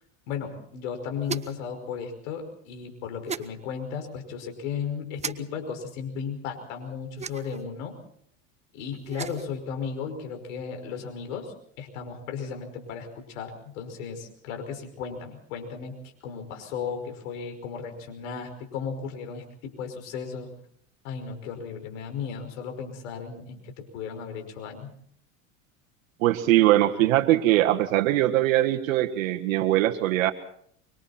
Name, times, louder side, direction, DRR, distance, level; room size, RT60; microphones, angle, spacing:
voice 1, 0.3-8.0 8.7-15.9 16.2-20.5 21.0-24.9, left 6 dB, 75° left, 5 dB, 5.5 m, -35 dB
sound 1, 1.2-1.7 3.3-3.5 5.2-5.3 7.2-7.6 9.0-9.5, right 6 dB, 15° right, 0.9 m, -34 dB
voice 2, 26.2-30.3, right 14 dB, 80° right, 6 dB, 1.7 m, -21 dB
24.5 x 24.5 x 4.4 m, 0.65 s
hypercardioid pair, 95°, 39 cm